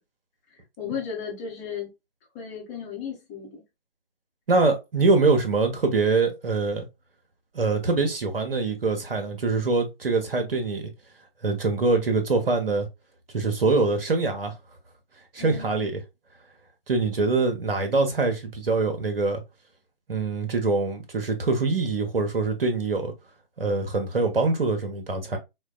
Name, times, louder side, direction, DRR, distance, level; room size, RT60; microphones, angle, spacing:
voice 1, 0.8-1.9 2.3-3.6 15.4-15.9, left 7 dB, 15° left, 0.9 m, -35 dB
voice 2, 4.5-6.9 7.5-10.9 11.4-12.9 13.3-14.5 15.3-16.0 16.9-19.4 20.1-23.1 23.6-25.4, right 3 dB, 70° right, 0.9 m, -24 dB
4.3 x 2.2 x 2.3 m
figure-of-eight pair, 140°, 30 cm